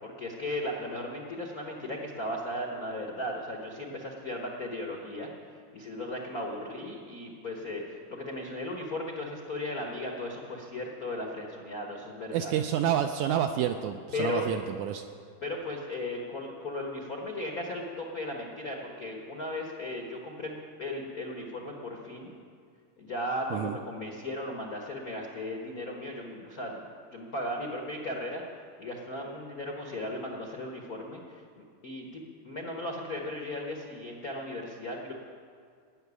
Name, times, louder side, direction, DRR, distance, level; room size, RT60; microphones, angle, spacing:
voice 1, 0.0-5.3 5.7-12.5 14.1-14.5 15.4-22.3 23.0-26.8 27.1-28.4 28.8-31.4 31.8-35.1, left 1 dB, 70° left, 0 dB, 0.8 m, -36 dB
voice 2, 12.3-15.0 23.5-23.8, right 10 dB, 80° right, 6 dB, 1.7 m, -29 dB
17.5 x 7.0 x 9.7 m, 2.2 s
omnidirectional pair, 3.8 m